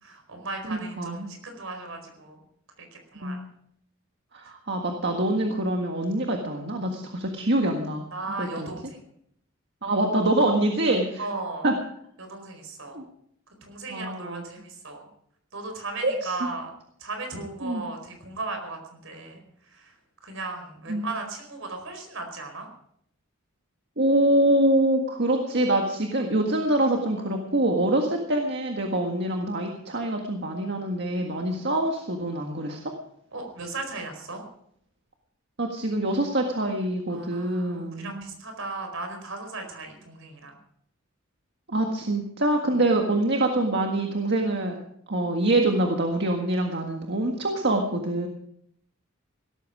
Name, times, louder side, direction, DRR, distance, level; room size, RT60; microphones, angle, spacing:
voice 1, 0.0-2.4 2.8-3.4 8.1-9.0 11.2-11.7 12.2-13.0 13.6-15.0 15.5-16.7 17.0-19.4 19.7-19.9 20.2-22.7 33.3-34.4 37.1-40.5 42.7-42.8, right 3 dB, 70° right, 5 dB, 4.6 m, -36 dB
voice 2, 0.7-1.3 3.2-3.4 4.3-8.0 8.4-8.7 9.8-11.3 11.6-11.7 12.9-13.0 13.9-14.4 16.0-16.3 17.6-17.8 20.9-21.1 24.0-32.8 35.6-38.3 41.7-44.8 45.1-48.3, right 1 dB, 55° right, 2 dB, 1.7 m, -25 dB
17.5 x 13.5 x 4.9 m, 0.69 s
head